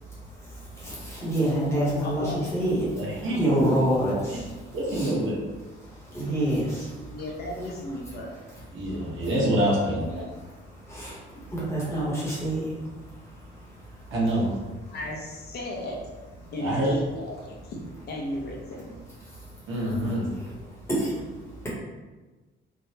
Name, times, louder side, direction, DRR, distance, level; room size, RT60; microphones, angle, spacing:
voice 1, 0.0-5.1 5.8-7.2 8.8-9.2 10.4-14.1 16.4-16.5 18.7-18.8 19.2-19.7 20.0-20.5 20.8-21.7, right 1 dB, 15° left, -8 dB, 0.9 m, -29 dB
voice 2, 2.0-2.5 7.1-8.4 11.9-12.0 14.9-16.0 16.5-17.8 18.1-19.0, left 1 dB, 55° left, -2 dB, 0.6 m, -35 dB
voice 3, 2.9-3.8 4.3-4.4 4.7-5.4 8.7-10.2 14.1-14.5 16.6-16.9 19.7-20.3, right 1 dB, 85° right, -5 dB, 1.0 m, -26 dB
3.3 x 2.1 x 2.7 m, 1.3 s
cardioid pair, 175°, 20 cm